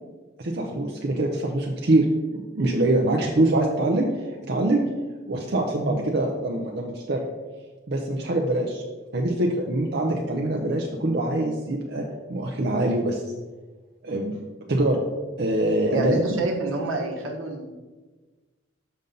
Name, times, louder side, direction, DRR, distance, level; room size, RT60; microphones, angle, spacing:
voice 1, 0.4-2.1 2.3-4.8 5.3-7.3 7.9-8.8 9.1-13.2 14.0-14.4 14.7-15.0 15.4-16.2, right 1 dB, 55° right, 0 dB, 0.6 m, -24 dB
voice 2, 15.9-17.6, right 2 dB, 80° right, 1 dB, 1.3 m, -27 dB
6.9 x 5.3 x 3.9 m, 1.3 s
head